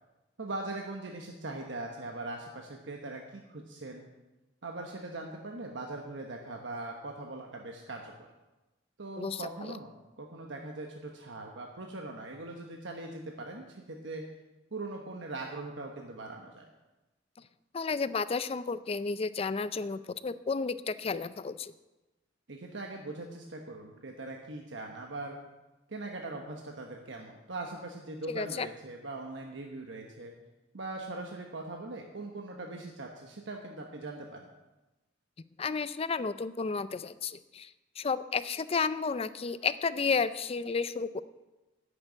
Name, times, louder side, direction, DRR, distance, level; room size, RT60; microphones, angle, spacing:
voice 1, 0.4-4.0 4.6-8.1 9.0-14.2 14.7-16.6 22.5-25.4 25.9-30.3 30.7-34.5, right 2 dB, 80° right, 1 dB, 1.1 m, -41 dB
voice 2, 9.2-9.7 17.7-21.7 28.3-28.7 35.6-37.7 38.0-41.2, left 5 dB, 30° left, 14 dB, 0.4 m, -32 dB
10.5 x 6.7 x 8.6 m, 1.1 s
head